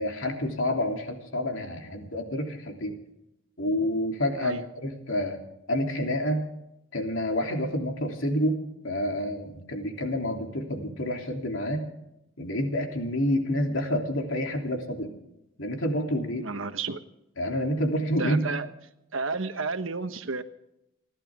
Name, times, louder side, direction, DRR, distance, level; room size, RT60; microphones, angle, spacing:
voice 1, 0.0-3.0 3.6-5.4 5.7-6.5 6.9-11.8 12.4-15.1 15.6-16.5 17.4-18.4, equal, 75° left, 2 dB, 3.2 m, -28 dB
voice 2, 16.4-17.0 18.2-18.7 19.1-20.4, right 4 dB, 80° right, 10 dB, 1.2 m, -31 dB
30.0 x 11.5 x 3.7 m, 0.86 s
head